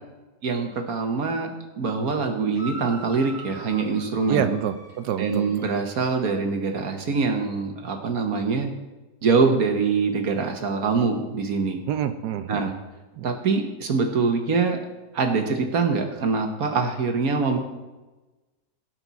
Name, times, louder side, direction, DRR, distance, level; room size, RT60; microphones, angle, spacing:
voice 1, 0.4-1.5 1.8-4.5 5.2-8.7 9.2-11.8 12.5-12.7 13.2-14.8 15.1-17.6, right 4 dB, 60° right, 5 dB, 1.5 m, -24 dB
sound 1, 2.5-5.8, right 2 dB, 60° left, 2.3 m, -42 dB
voice 2, 4.3-5.5 11.9-12.7 13.2-13.3, right 9 dB, 75° right, 10 dB, 1.1 m, -27 dB
16.5 x 6.1 x 4.1 m, 1.1 s
omnidirectional pair, 1.9 m